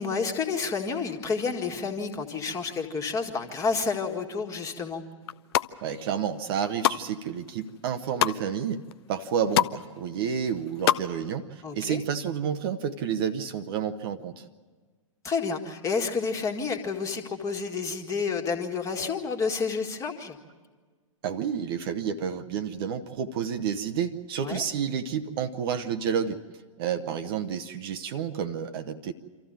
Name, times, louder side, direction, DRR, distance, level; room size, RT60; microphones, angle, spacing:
voice 1, 0.0-5.0 11.6-12.0 15.2-20.4 24.4-24.6, left 5 dB, 15° left, 4 dB, 1.8 m, -30 dB
sound 1, 5.2-5.7 6.3-7.0 7.4-8.4 8.9-9.0 9.2-9.8 10.1-11.0 11.3-11.4, left 12 dB, 45° left, 0.6 m, -25 dB
voice 2, 5.8-8.8 9.1-14.4 21.2-26.4 26.8-29.1, right 7 dB, 45° right, 8 dB, 1.0 m, -30 dB
26.0 x 14.5 x 8.9 m, 1.4 s
figure-of-eight pair, 110°, 17 cm